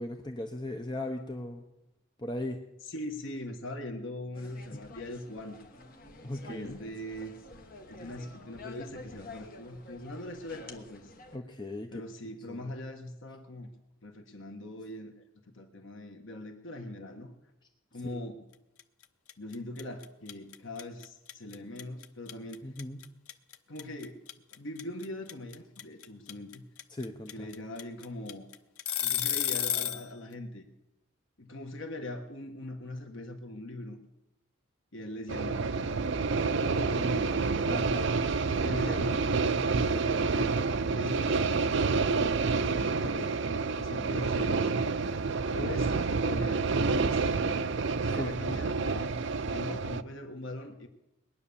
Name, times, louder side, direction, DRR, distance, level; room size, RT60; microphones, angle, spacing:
voice 1, 0.0-1.6 2.2-2.6 4.7-4.8 6.2-6.8 11.3-12.0 12.5-12.7 18.1-18.2 22.6-23.0 26.9-27.5 37.6-38.1 45.6-45.7 48.2-48.3, left 1 dB, 20° left, 4 dB, 0.8 m, -37 dB
voice 2, 2.8-5.5 6.5-7.3 7.9-11.1 11.9-13.7 14.0-15.2 15.5-17.3 17.9-18.4 19.4-22.7 23.7-24.2 24.5-26.6 27.3-28.5 29.0-30.7 31.4-34.0 34.9-38.2 38.6-40.5 40.9-44.9 45.5-50.9, left 1 dB, 60° left, 4 dB, 1.4 m, -41 dB
sound 1, 4.3-11.4, left 2 dB, 40° left, 1.4 m, -49 dB
sound 2, 18.8-19.0 19.3-30.1, left 10 dB, 85° left, 0.9 m, -32 dB
sound 3, 35.3-50.0, right 4 dB, 55° right, 0.5 m, -28 dB
20.5 x 10.0 x 7.0 m, 0.93 s
head